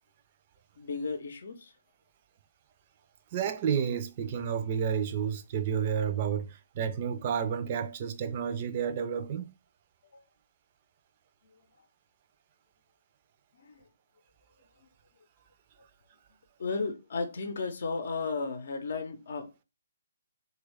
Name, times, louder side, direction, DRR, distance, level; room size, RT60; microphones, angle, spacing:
voice 1, 0.8-1.7 10.1-10.2 13.6-13.8 16.6-19.6, left 4 dB, 60° left, 0.6 m, -34 dB
voice 2, 3.3-9.5, right 7 dB, 40° right, 0.5 m, -31 dB
3.1 x 2.3 x 3.4 m
figure-of-eight pair, 140°, 0 cm